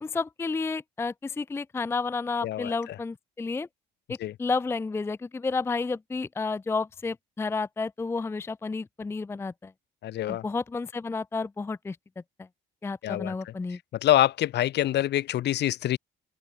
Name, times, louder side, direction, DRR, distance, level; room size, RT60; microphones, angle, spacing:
voice 1, 0.0-3.7 4.1-9.7 10.3-12.0 12.8-13.8, left 4 dB, 10° left, 0.5 m, -31 dB
voice 2, 2.4-2.7 4.2-4.3 10.0-10.4 13.0-13.5 14.0-16.0, left 13 dB, 55° left, 1.7 m, -25 dB
open air
cardioid pair, 140°, 20 cm